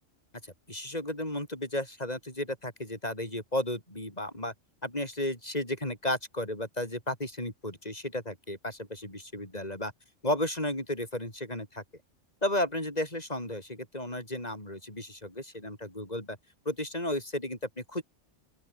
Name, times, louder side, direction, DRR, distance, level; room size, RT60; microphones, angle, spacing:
voice 1, 0.7-4.5 4.8-9.9 10.2-11.8 12.4-16.4 16.7-18.0, left 1 dB, 30° left, 7.1 m, -33 dB
open air
omnidirectional pair, 1.3 m